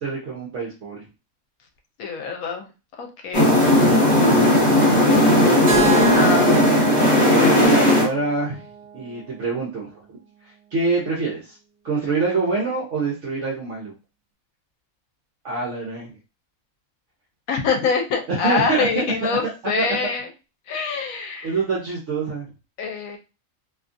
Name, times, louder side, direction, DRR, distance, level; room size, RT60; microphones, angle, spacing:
voice 1, 0.0-1.0 7.2-8.6 8.9-9.9 10.7-11.6 11.8-13.9 15.4-16.1 18.3-19.1 19.8-19.9 21.4-22.5, right 4 dB, 60° right, -4 dB, 1.0 m, -25 dB
voice 2, 2.0-2.7 3.0-3.5 6.1-6.5 17.5-20.3 20.7-21.5 22.8-23.2, left 5 dB, 75° left, 3 dB, 1.0 m, -25 dB
sound 1, 3.3-8.1, left 1 dB, 30° left, 1.2 m, -16 dB
Keyboard (musical), 5.7-9.6, right 6 dB, 45° right, 0.6 m, -29 dB
2.7 x 2.3 x 2.5 m, 0.30 s
omnidirectional pair, 1.5 m